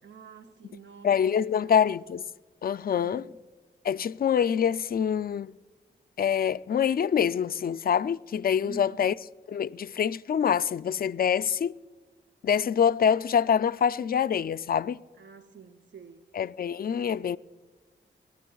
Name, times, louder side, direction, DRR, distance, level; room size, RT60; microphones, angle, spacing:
voice 1, 0.0-2.0 2.9-3.4 8.6-9.1 15.2-16.3, right 4 dB, 65° right, 0.8 m, -48 dB
voice 2, 1.0-2.2 2.6-3.2 3.8-5.5 6.2-9.1 9.5-11.7 12.4-15.0 16.3-17.4, left 8 dB, 50° left, 0.4 m, -25 dB
29.5 x 12.0 x 2.3 m
cardioid pair, 60°, 20 cm